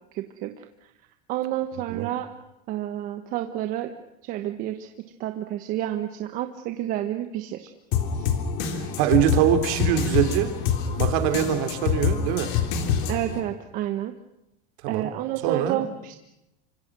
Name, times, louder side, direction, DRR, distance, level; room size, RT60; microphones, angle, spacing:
voice 1, 0.1-0.9 1.3-2.3 2.7-3.9 4.2-4.9 5.2-7.7 8.1-8.4 13.1-14.1 14.9-16.1, right 13 dB, 40° right, 7 dB, 1.2 m, -30 dB
sound 1, 7.9-13.4, left 7 dB, 55° left, 3.5 m, -26 dB
voice 2, 8.7-10.5 10.9-12.5 14.8-15.1 15.4-15.8, right 10 dB, 60° right, 7 dB, 3.2 m, -23 dB
26.0 x 25.5 x 6.2 m, 0.85 s
supercardioid pair, 165°, 21 cm